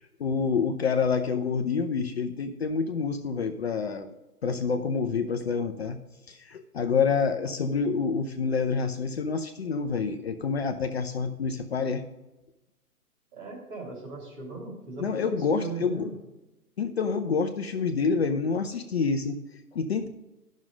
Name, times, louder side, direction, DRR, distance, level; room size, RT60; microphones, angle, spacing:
voice 1, 0.0-4.2 4.4-6.0 6.3-12.0 15.0-16.1 16.8-19.4 19.7-20.1, left 5 dB, 45° left, 6 dB, 0.7 m, -27 dB
voice 2, 13.3-16.1, right 3 dB, 30° right, -1 dB, 2.7 m, -38 dB
10.5 x 6.4 x 5.0 m, 1.0 s
figure-of-eight pair, 140°, 46 cm